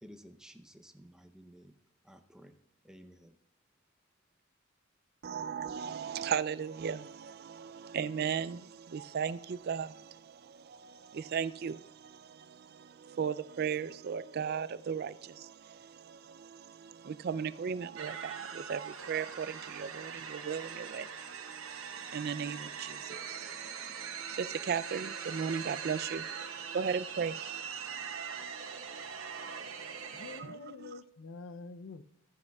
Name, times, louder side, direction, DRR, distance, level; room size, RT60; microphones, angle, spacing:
voice 1, 0.0-1.8 2.0-2.6 2.8-3.4, equal, 5° right, 0.6 m, -54 dB
voice 2, 5.2-30.9, right 7 dB, 50° right, 0.3 m, -37 dB
sound 1, 18.0-30.4, right 7 dB, 75° right, 0.9 m, -42 dB
voice 3, 30.2-32.0, left 3 dB, 65° left, 0.5 m, -46 dB
14.5 x 9.6 x 2.3 m
head